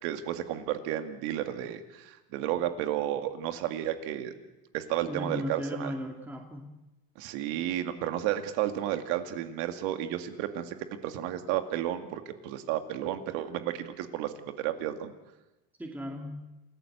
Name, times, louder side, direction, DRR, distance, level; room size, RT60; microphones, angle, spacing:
voice 1, 0.0-4.3 4.7-5.9 7.2-15.1, right 12 dB, 75° right, 8 dB, 2.2 m, -32 dB
voice 2, 5.1-6.7 15.8-16.4, equal, 5° right, 1 dB, 2.4 m, -36 dB
28.0 x 15.0 x 8.0 m, 0.99 s
supercardioid pair, 120°, 31 cm